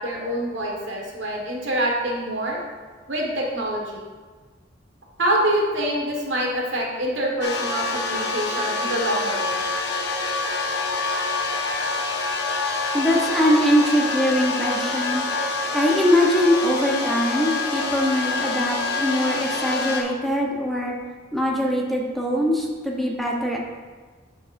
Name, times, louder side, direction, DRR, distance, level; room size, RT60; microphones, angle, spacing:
voice 1, 0.0-2.6 3.1-4.0 5.2-9.6, right 1 dB, 90° right, -1 dB, 1.6 m, -25 dB
sound 1, 7.4-20.0, left 3 dB, 65° left, 0.9 m, -26 dB
voice 2, 12.9-15.3 15.7-20.9 21.3-23.6, equal, ahead, -2 dB, 0.9 m, -22 dB
11.5 x 4.8 x 2.6 m, 1.4 s
head